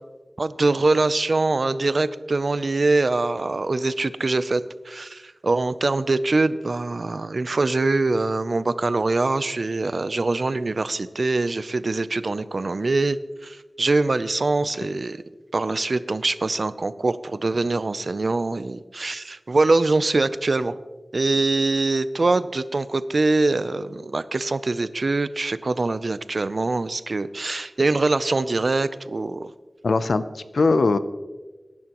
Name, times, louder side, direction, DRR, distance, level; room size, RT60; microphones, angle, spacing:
voice 1, 0.4-13.2 13.4-15.2 15.5-20.8 21.1-29.5, right 3 dB, 60° right, 14 dB, 0.5 m, -23 dB
voice 2, 29.8-31.0, left 3 dB, 90° left, 12 dB, 0.6 m, -20 dB
21.5 x 11.0 x 3.0 m, 1.2 s
wide cardioid pair, 65°, 0 cm